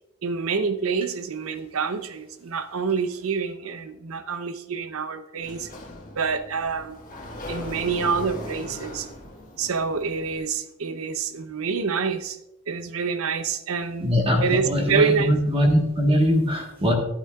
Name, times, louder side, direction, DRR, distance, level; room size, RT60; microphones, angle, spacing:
voice 1, 0.2-5.7 6.1-7.0 7.5-9.1 9.6-12.4 12.7-14.1 14.4-15.3, right 5 dB, 70° right, 10 dB, 0.7 m, -27 dB
Sliding door, 5.4-10.4, left 1 dB, 35° left, 1.7 m, -39 dB
voice 2, 14.0-16.9, equal, 25° right, 1 dB, 1.3 m, -21 dB
11.5 x 11.5 x 2.3 m, 0.87 s
head